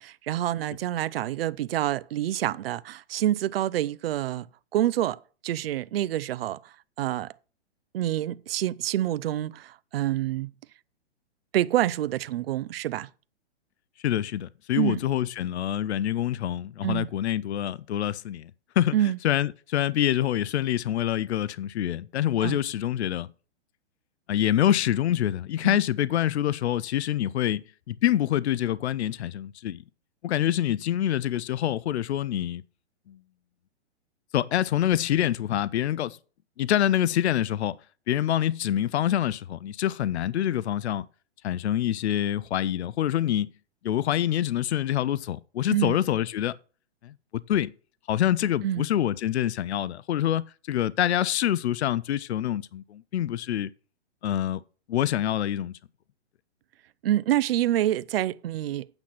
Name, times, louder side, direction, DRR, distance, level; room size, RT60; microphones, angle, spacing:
voice 1, 0.0-4.5 4.7-7.3 7.9-10.5 11.5-13.1 14.7-15.0 16.8-17.1 18.9-19.2 22.4-22.6 25.6-25.8 45.7-46.0 48.6-48.8 57.0-58.9, right 13 dB, 60° right, 0.6 m, -27 dB
voice 2, 14.0-18.5 18.8-18.9 19.2-23.3 24.3-29.8 30.2-32.6 33.1-33.2 34.3-36.2 36.6-37.8 38.1-41.1 41.4-43.5 43.8-46.6 47.0-47.1 47.5-47.7 48.1-53.7 54.2-54.6 54.9-55.7, left 11 dB, 75° left, 0.6 m, -26 dB
8.9 x 5.9 x 5.7 m
hypercardioid pair, 150°, 34 cm